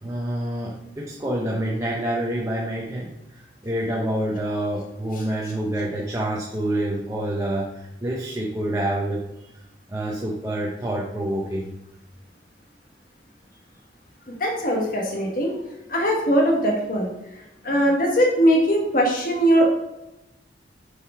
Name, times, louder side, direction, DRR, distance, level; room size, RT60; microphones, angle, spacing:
voice 1, 0.0-3.1 3.6-9.2 9.9-11.7 19.1-19.2, right 1 dB, 15° right, -3 dB, 0.8 m, -27 dB
voice 2, 14.3-15.5 15.9-17.1 17.6-19.7, equal, 50° left, 0 dB, 1.3 m, -20 dB
6.8 x 4.7 x 4.8 m, 0.94 s
head